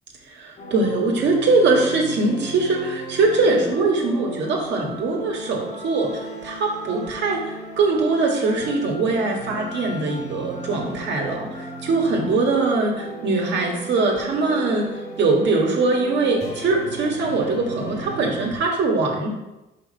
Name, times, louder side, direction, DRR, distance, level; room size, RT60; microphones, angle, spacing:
voice 1, 0.2-19.3, right 3 dB, 70° right, 0 dB, 1.7 m, -22 dB
sound 1, 0.6-18.5, right 1 dB, 35° left, 1.6 m, -36 dB
5.3 x 5.1 x 5.6 m, 0.99 s
cardioid pair, 115°, 19 cm